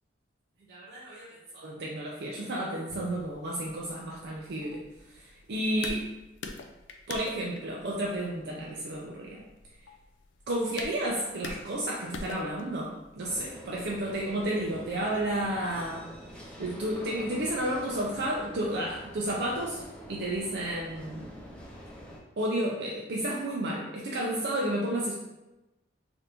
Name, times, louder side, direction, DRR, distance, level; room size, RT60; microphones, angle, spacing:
voice 1, 0.7-4.8 5.2-6.1 7.1-9.4 10.5-16.0 16.6-19.8 20.1-21.3 22.4-25.1, right 1 dB, 60° right, -3 dB, 0.4 m, -32 dB
sound 1, 2.9-15.6, left 3 dB, 80° left, 0.4 m, -46 dB
sound 2, 13.2-22.2, equal, 5° left, 0.4 m, -46 dB
3.3 x 2.5 x 2.9 m, 1.0 s
head